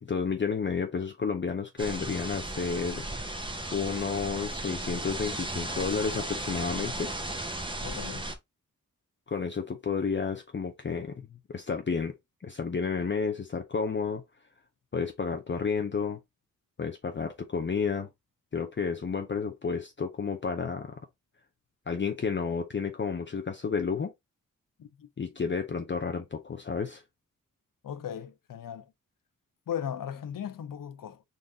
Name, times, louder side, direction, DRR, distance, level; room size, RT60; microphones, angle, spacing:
voice 1, 0.0-3.4 3.7-7.1 9.3-12.1 12.4-14.2 14.9-16.2 16.8-18.1 18.5-20.9 21.9-24.1 25.2-27.0, left 5 dB, 35° left, 0.6 m, -31 dB
sound 1, 1.8-8.4, right 1 dB, 15° right, 1.0 m, -35 dB
voice 2, 7.8-8.3 24.8-25.1 27.8-28.9 29.7-31.2, left 9 dB, 70° left, 0.7 m, -37 dB
4.0 x 2.6 x 3.4 m
cardioid pair, 60°, 34 cm